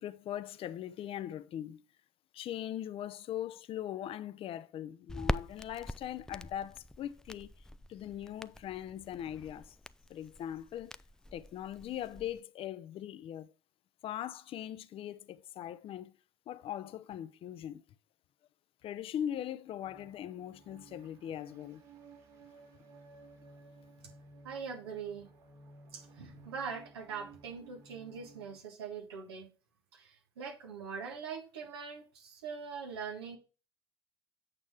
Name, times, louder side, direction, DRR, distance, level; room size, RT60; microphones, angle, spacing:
voice 1, 0.0-1.8 2.3-7.6 7.9-9.8 10.1-11.0 11.3-13.5 14.0-16.1 16.5-17.8 18.8-21.8, left 11 dB, 45° left, 0.6 m, -40 dB
Crackle, 5.1-12.4, left 1 dB, 5° left, 0.3 m, -43 dB
sound 1, 19.8-28.6, right 3 dB, 65° right, 2.5 m, -57 dB
voice 2, 24.4-25.3 25.9-29.5 29.9-33.4, right 6 dB, 85° right, 1.5 m, -42 dB
8.8 x 6.1 x 3.6 m
hypercardioid pair, 70°, 13 cm